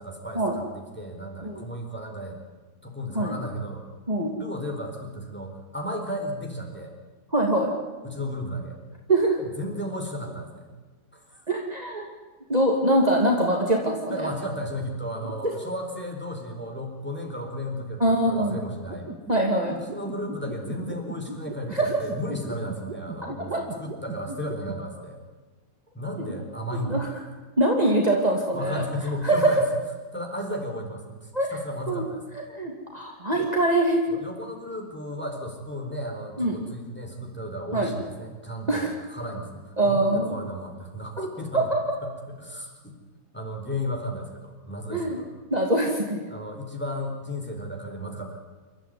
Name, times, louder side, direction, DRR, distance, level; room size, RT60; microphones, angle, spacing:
voice 1, 0.0-2.4 2.8-3.9 4.3-6.9 8.0-8.8 9.4-10.7 11.1-11.4 14.1-19.1 19.7-23.5 23.8-25.2 25.9-27.0 28.5-29.6 30.1-32.2 33.3-33.5 34.1-43.0 43.3-45.3 46.3-48.4, equal, 5° left, 1 dB, 4.5 m, -34 dB
voice 2, 7.3-7.7 9.1-9.4 11.5-12.0 12.5-14.2 18.0-18.6 19.3-19.7 21.7-21.9 23.5-23.6 26.9-27.1 27.6-28.8 29.2-29.7 31.3-31.5 31.9-32.0 32.5-34.0 36.4-36.5 37.7-37.9 38.7-38.9 39.8-40.4 41.5-41.8 44.9-45.2 45.5-46.3, right 1 dB, 25° right, 0 dB, 2.8 m, -23 dB
sound 1, 18.9-24.8, right 3 dB, 85° right, 2.5 m, -37 dB
28.0 x 13.5 x 9.6 m, 1.3 s
omnidirectional pair, 1.6 m